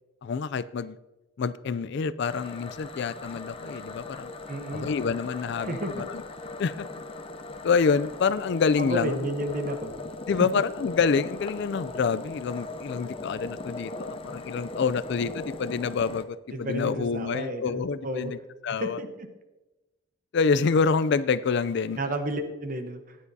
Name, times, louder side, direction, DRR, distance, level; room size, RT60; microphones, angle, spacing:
voice 1, 0.2-1.0 1.4-4.3 4.7-6.2 6.6-6.9 7.6-9.3 10.3-18.4 18.6-19.0 20.3-22.0, left 5 dB, 55° left, 15 dB, 0.4 m, -27 dB
sound 1, 2.2-16.2, left 2 dB, 25° left, 0.7 m, -39 dB
voice 2, 4.5-4.9 5.6-6.0 8.8-9.9 16.5-18.3 18.7-19.3 22.0-23.2, right 1 dB, 40° right, 7 dB, 1.0 m, -32 dB
14.5 x 10.5 x 2.7 m, 1.1 s
head